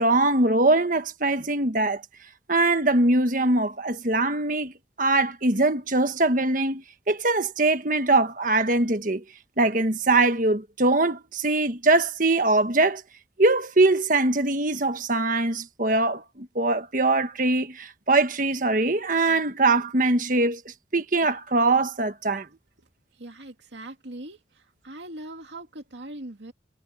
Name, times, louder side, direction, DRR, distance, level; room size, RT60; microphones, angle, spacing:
voice 1, 0.0-2.0 2.5-9.2 9.6-13.0 13.4-22.5, right 2 dB, 50° right, 1.5 m, -22 dB
voice 2, 23.2-26.5, right 1 dB, 80° right, 2.3 m, -41 dB
head